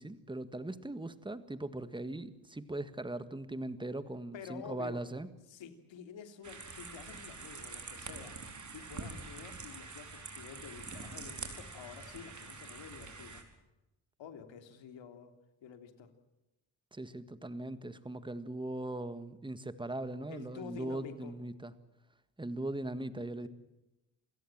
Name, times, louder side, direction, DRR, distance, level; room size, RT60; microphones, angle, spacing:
voice 1, 0.0-5.3 16.9-21.7 22.4-23.5, right 2 dB, 10° right, 12 dB, 1.7 m, -40 dB
voice 2, 4.3-5.0 5.5-8.4 8.7-13.4 14.2-15.3 15.6-16.1 20.3-21.4, left 7 dB, 70° left, 7 dB, 3.4 m, -49 dB
sound 1, 6.4-13.4, right 4 dB, 35° right, 4.5 m, -46 dB
28.0 x 17.0 x 7.5 m, 0.95 s
cardioid pair, 90°, 47 cm